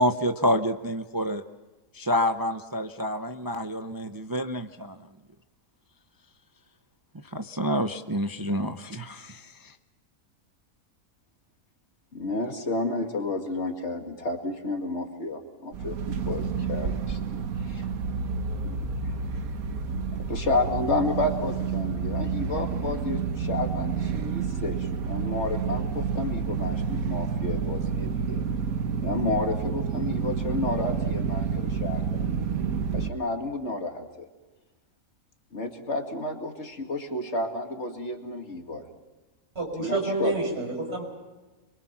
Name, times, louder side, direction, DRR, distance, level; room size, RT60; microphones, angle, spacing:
voice 1, 0.0-1.4 1.9-5.0 7.3-9.7, equal, 25° right, 7 dB, 0.5 m, -28 dB
voice 2, 12.1-17.4 17.7-17.9 18.6-18.9 20.1-28.4 29.0-34.3 35.5-38.9 39.8-40.4, left 2 dB, 50° left, 4 dB, 2.4 m, -31 dB
sound 1, 15.7-33.1, right 6 dB, 85° right, 1.4 m, -29 dB
voice 3, 39.6-41.0, right 3 dB, 50° right, 2 dB, 5.6 m, -28 dB
26.0 x 23.5 x 6.0 m, 1.2 s
omnidirectional pair, 1.5 m